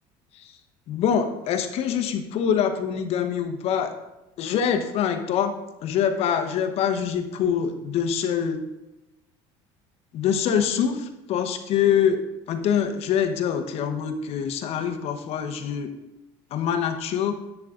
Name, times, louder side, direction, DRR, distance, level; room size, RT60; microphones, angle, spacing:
voice 1, 0.9-3.9 4.4-8.6 10.1-12.2 12.5-15.9 16.5-17.3, left 8 dB, 55° left, 6 dB, 1.0 m, -25 dB
10.5 x 8.0 x 2.5 m, 1.0 s
supercardioid pair, 115°, 12 cm